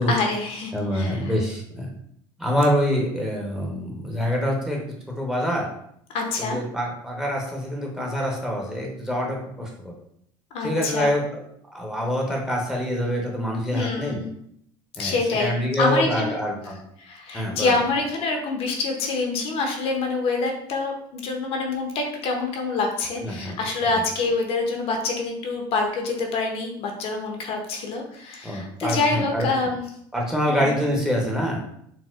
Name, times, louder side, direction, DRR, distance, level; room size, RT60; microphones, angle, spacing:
voice 1, 0.1-1.3 6.1-6.6 10.5-11.2 13.7-14.3 15.0-16.4 16.6-29.8 30.5-30.8, left 3 dB, 60° left, 2 dB, 0.6 m, -26 dB
voice 2, 0.7-1.9 2.4-4.8 5.1-5.7 6.4-9.9 10.6-11.4 11.7-14.2 15.0-16.8 17.3-17.7 23.2-23.6 28.4-29.5 30.1-31.6, equal, 5° right, -2 dB, 0.8 m, -25 dB
4.0 x 2.1 x 2.4 m, 0.70 s
supercardioid pair, 105°, 11 cm